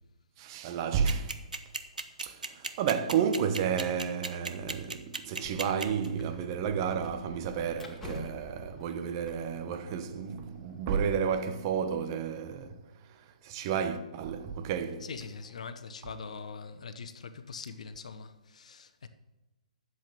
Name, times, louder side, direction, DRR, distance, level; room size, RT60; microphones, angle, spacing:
voice 1, 0.4-1.4 2.2-15.1, right 7 dB, 35° right, 1.1 m, -32 dB
sound 1, 1.1-6.1, right 3 dB, 80° right, 1.1 m, -35 dB
sound 2, 5.2-12.3, equal, 5° left, 2.3 m, -49 dB
voice 2, 15.0-19.1, left 5 dB, 60° left, 1.1 m, -43 dB
12.0 x 8.0 x 7.0 m
figure-of-eight pair, 125°, 4 cm